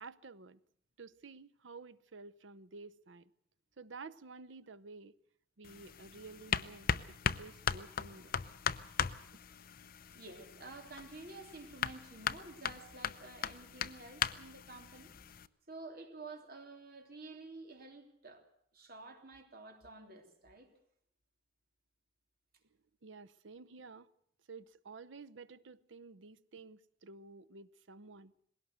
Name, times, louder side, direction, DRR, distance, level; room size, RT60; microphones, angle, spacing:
voice 1, 0.0-0.6 1.0-3.3 3.8-5.1 5.6-8.3 23.0-24.1 24.5-28.3, right 4 dB, 85° right, 0.8 m, -52 dB
sound 1, 5.6-15.5, left 7 dB, 50° left, 0.7 m, -39 dB
voice 2, 10.1-15.1 15.7-18.4 18.7-20.7, right 3 dB, 55° right, 3.3 m, -51 dB
20.5 x 17.5 x 7.9 m
head